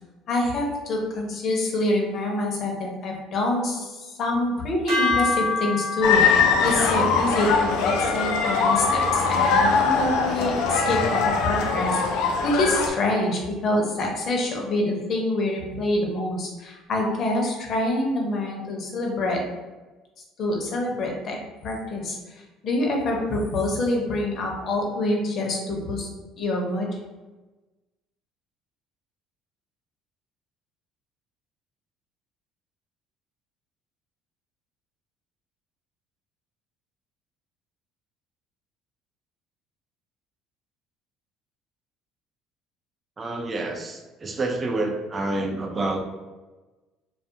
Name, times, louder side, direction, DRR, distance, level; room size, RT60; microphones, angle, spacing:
voice 1, 0.3-19.5 20.4-26.1 26.4-26.9, left 1 dB, 50° left, 0 dB, 0.7 m, -26 dB
sound 1, 4.9-11.2, left 3 dB, 70° right, 0.9 m, -30 dB
sound 2, 6.0-12.9, left 5 dB, 85° left, 0.3 m, -22 dB
voice 2, 43.2-46.2, right 2 dB, 25° right, 2 dB, 0.3 m, -28 dB
2.3 x 2.3 x 2.7 m, 1.2 s
cardioid pair, 110°, 0 cm